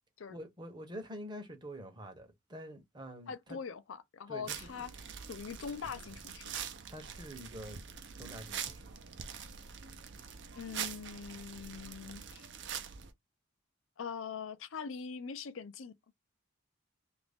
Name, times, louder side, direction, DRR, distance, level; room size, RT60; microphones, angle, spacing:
voice 1, 0.3-3.6 4.3-4.7 6.9-7.8 8.2-8.9, equal, 20° right, 0.8 m, -46 dB
voice 2, 3.3-4.9 5.3-6.6 10.5-12.5 14.0-15.9, left 6 dB, 75° left, 0.5 m, -42 dB
sound 1, 4.5-13.1, right 7 dB, 60° right, 0.6 m, -44 dB
2.9 x 2.5 x 3.4 m
head